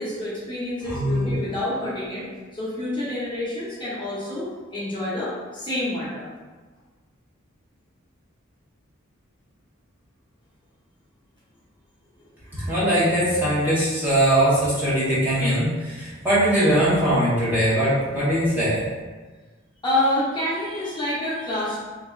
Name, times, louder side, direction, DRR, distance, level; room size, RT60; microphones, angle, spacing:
voice 1, 0.0-2.2 2.5-6.3 19.8-21.8, left 1 dB, 20° left, -9 dB, 0.8 m, -27 dB
voice 2, 0.8-1.5 12.5-18.8, right 1 dB, 10° right, -11 dB, 0.9 m, -21 dB
3.7 x 2.8 x 2.3 m, 1.3 s
head